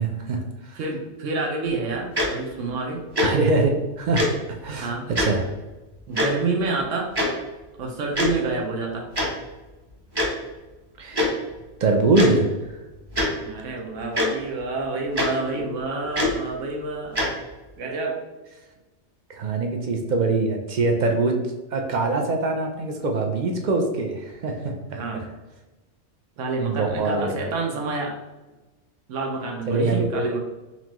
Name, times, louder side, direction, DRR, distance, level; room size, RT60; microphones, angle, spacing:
voice 1, 0.0-0.8 3.2-4.3 4.6-4.9 5.2-5.4 11.0-11.3 11.8-12.5 19.3-21.4 21.7-24.7 26.6-27.3 29.7-30.3, right 3 dB, 55° right, 3 dB, 0.5 m, -23 dB
voice 2, 0.7-3.0 4.8-5.1 6.1-7.1 7.8-9.1 13.4-17.2 17.8-18.2 24.9-25.3 26.4-28.1 29.1-30.4, right 3 dB, 85° right, 1 dB, 1.1 m, -28 dB
Tick-tock, 2.1-2.3 3.1-3.3 4.1-4.3 5.1-5.3 6.1-6.3 7.2-7.3 8.1-8.3 9.1-9.3 10.1-10.3 11.1-11.3 12.1-12.3 13.1-13.3 14.1-14.3 15.1-15.3 16.1-16.3 17.1-17.3, left 1 dB, 25° right, 0.8 m, -22 dB
4.2 x 3.0 x 2.9 m, 1.1 s
omnidirectional pair, 1.2 m